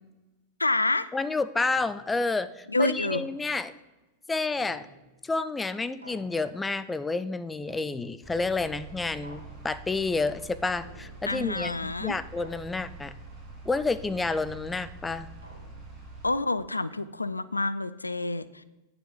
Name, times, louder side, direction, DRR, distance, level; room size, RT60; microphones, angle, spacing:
voice 1, 0.6-1.1 2.7-3.2 11.3-12.1 16.2-18.5, left 2 dB, 80° left, 16 dB, 0.3 m, -28 dB
voice 2, 1.1-3.7 4.3-4.9 5.2-13.1 13.7-15.3, left 3 dB, 10° left, 13 dB, 0.4 m, -30 dB
sound 1, 1.6-2.2 3.0-3.7 4.6-5.3 6.0-6.8 7.7-8.4 9.2-10.0 10.8-11.5 12.4-13.1 14.0-16.0, equal, 80° right, 2.2 m, -52 dB
sound 2, 8.2-16.3, right 3 dB, 15° right, 3.2 m, -45 dB
9.0 x 5.9 x 5.1 m, 1.0 s
figure-of-eight pair, 90°, 0 cm